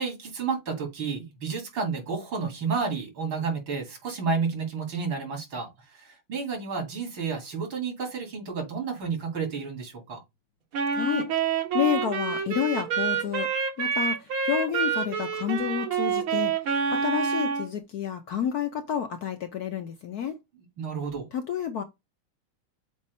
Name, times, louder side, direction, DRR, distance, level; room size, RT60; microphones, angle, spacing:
voice 1, 0.0-10.2 20.8-21.3, right 5 dB, 70° right, 3.3 m, -31 dB
Wind instrument woodwind instrument, 10.7-17.7, right 6 dB, 85° right, 2.5 m, -27 dB
voice 2, 10.9-11.3 11.7-13.5 13.8-16.5 16.9-20.4 21.3-21.8, left 9 dB, 65° left, 1.1 m, -29 dB
7.2 x 2.5 x 5.3 m
omnidirectional pair, 2.3 m